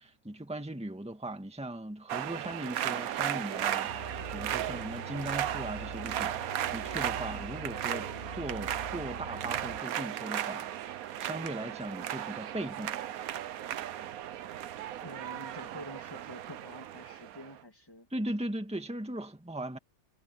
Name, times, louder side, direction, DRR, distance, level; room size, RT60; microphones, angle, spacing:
voice 1, 0.0-10.7 11.2-13.0 18.1-19.8, right 1 dB, 5° right, 1.8 m, -38 dB
sound 1, 2.1-17.6, right 11 dB, 80° right, 1.2 m, -36 dB
sound 2, 3.9-9.8, right 1 dB, 50° right, 5.6 m, -44 dB
voice 2, 15.0-18.1, equal, 15° left, 2.0 m, -48 dB
omnidirectional pair, 1.5 m